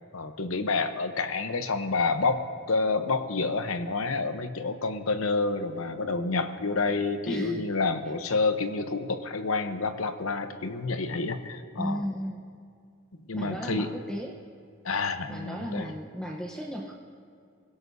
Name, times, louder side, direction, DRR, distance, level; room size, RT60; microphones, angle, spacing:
voice 1, 0.1-12.0 13.3-13.9 14.8-15.9, left 3 dB, 80° left, 9 dB, 0.9 m, -28 dB
voice 2, 7.2-7.6 11.8-12.5 13.3-14.4 15.3-16.9, equal, 5° left, -1 dB, 0.9 m, -34 dB
24.5 x 17.0 x 2.7 m, 2.3 s
head